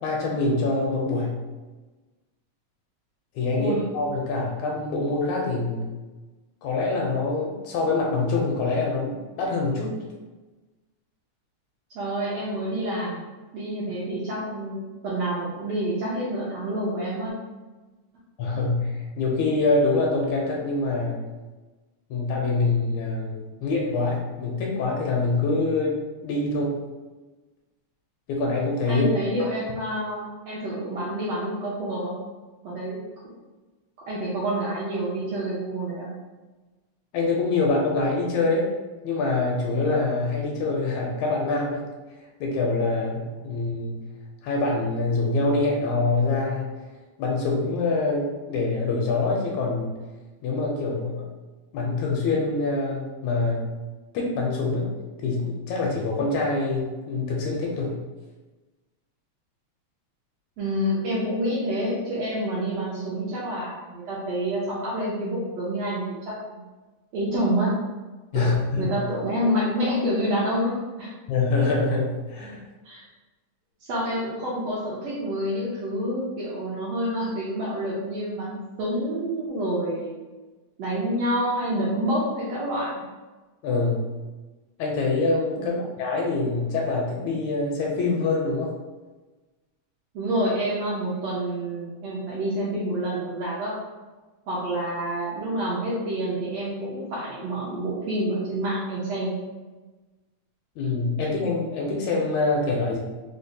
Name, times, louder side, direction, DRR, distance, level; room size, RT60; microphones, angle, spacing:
voice 1, 0.0-1.4 3.3-5.9 6.6-9.9 18.4-21.2 22.1-26.8 28.3-29.1 29.4-29.5 37.1-38.7 39.0-41.8 42.4-44.0 44.4-46.7 47.2-50.0 50.4-51.2 51.7-53.7 54.1-54.9 55.2-58.0 68.3-68.9 71.3-72.6 83.6-84.1 84.8-88.7 100.8-103.0, left 3 dB, 80° left, -1 dB, 1.8 m, -25 dB
voice 2, 11.9-13.2 13.5-17.3 28.9-32.1 32.6-33.0 34.1-36.1 60.6-66.6 67.1-67.7 68.3-71.1 72.8-73.0 73.8-80.1 80.8-83.0 85.6-85.9 90.1-93.8 94.5-99.3, right 1 dB, 75° right, -7 dB, 1.5 m, -28 dB
5.0 x 2.1 x 2.7 m, 1.2 s
omnidirectional pair, 3.5 m